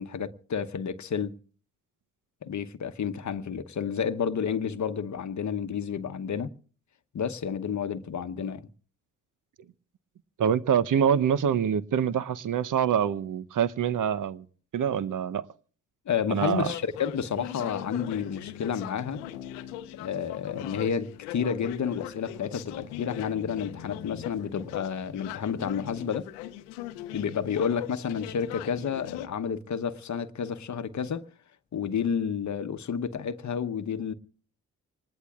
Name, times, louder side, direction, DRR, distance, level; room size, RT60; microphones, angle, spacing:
voice 1, 0.0-1.4 2.4-6.5 7.1-8.7 16.1-19.2 20.0-26.3 27.1-31.2 31.7-34.1, left 7 dB, 45° left, 1.0 m, -30 dB
voice 2, 10.4-14.4 14.7-15.5 16.3-16.7, right 8 dB, 50° right, 0.8 m, -25 dB
sound 1, 16.4-29.3, left 13 dB, 85° left, 0.7 m, -40 dB
25.5 x 19.5 x 2.4 m
hypercardioid pair, 45°, 40 cm